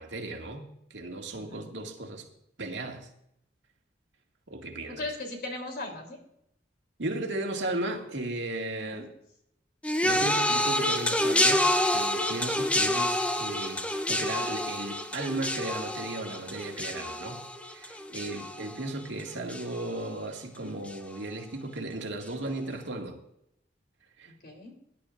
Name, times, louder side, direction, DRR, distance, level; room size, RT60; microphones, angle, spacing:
voice 1, 0.0-2.3 2.6-3.1 4.5-5.0 7.0-9.1 10.0-23.2 24.2-24.3, right 2 dB, 80° right, 2 dB, 2.0 m, -36 dB
voice 2, 1.4-1.8 4.9-6.2 8.9-9.0 24.4-24.7, left 2 dB, 55° left, 2 dB, 3.4 m, -38 dB
sound 1, 9.8-19.2 19.5-20.0 20.9-21.0, left 1 dB, 5° left, 0.7 m, -28 dB
20.0 x 11.0 x 2.5 m, 0.76 s
head